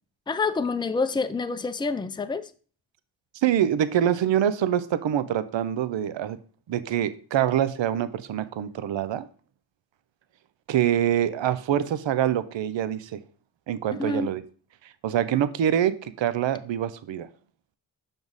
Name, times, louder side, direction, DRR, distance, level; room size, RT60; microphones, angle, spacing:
voice 1, 0.3-2.5 14.0-14.3, left 4 dB, 10° left, 0.5 m, -27 dB
voice 2, 3.4-6.4 6.7-9.3 10.7-13.2 13.7-14.4 15.0-17.3, right 10 dB, 65° right, 0.7 m, -25 dB
6.0 x 3.6 x 5.4 m
cardioid pair, 45°, 50 cm